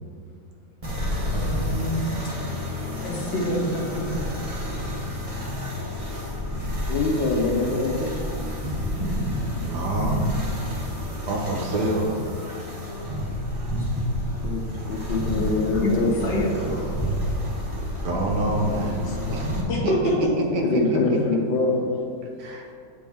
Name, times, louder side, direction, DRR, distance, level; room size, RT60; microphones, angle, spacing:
sound 1, 0.8-19.6, left 1 dB, 25° right, 0.8 m, -29 dB
voice 1, 1.3-2.1 3.0-4.2 15.5-16.8 19.7-20.2, equal, 40° left, -2 dB, 1.3 m, -27 dB
voice 2, 6.9-8.1 14.4-16.3 17.0-17.1 20.6-21.9, left 3 dB, 85° left, -1 dB, 1.5 m, -24 dB
voice 3, 9.6-10.2 11.3-12.2 18.0-19.0 19.3-19.6 19.8-21.2 22.4-22.6, right 1 dB, 65° right, 0 dB, 1.4 m, -26 dB
7.7 x 5.2 x 3.5 m, 2.2 s
omnidirectional pair, 2.0 m